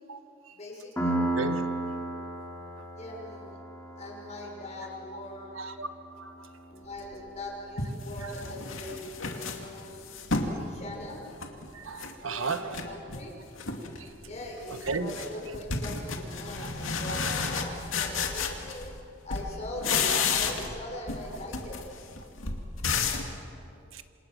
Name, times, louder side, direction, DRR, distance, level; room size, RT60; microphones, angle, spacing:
voice 1, 0.5-1.2 3.0-3.6 3.9-5.7 6.7-10.0 10.4-11.2 12.2-13.4 14.2-18.9 19.2-21.8, left 1 dB, 35° left, 5.8 m, -41 dB
Piano, 1.0-8.3, right 2 dB, 10° left, 3.7 m, -35 dB
voice 2, 1.4-1.7 5.1-5.2 5.5-5.9 6.2-6.5 8.2-8.5 10.5-10.7 11.7-12.9 14.0-14.1 14.7-15.1 17.2-17.5 18.4-18.6 23.9-24.0, right 4 dB, 80° right, 1.3 m, -35 dB
sound 1, 7.1-7.2 7.8-10.6 11.0-12.1 12.4-13.3 13.6-14.0 14.3-19.0 19.3-20.8 21.1-23.3, left 5 dB, 80° left, 2.4 m, -32 dB
27.5 x 26.5 x 6.4 m
head